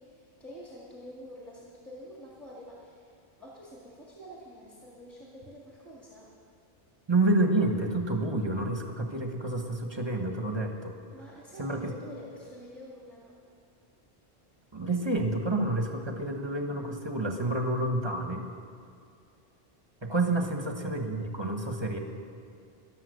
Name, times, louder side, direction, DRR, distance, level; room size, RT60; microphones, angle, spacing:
voice 1, 0.0-6.4 11.1-13.5 20.2-20.4, equal, ahead, -5 dB, 1.8 m, -48 dB
voice 2, 7.1-10.9 11.6-11.9 14.7-18.5 20.0-22.0, right 2 dB, 25° right, 3 dB, 1.2 m, -29 dB
14.5 x 11.0 x 6.5 m, 2.3 s
omnidirectional pair, 1.0 m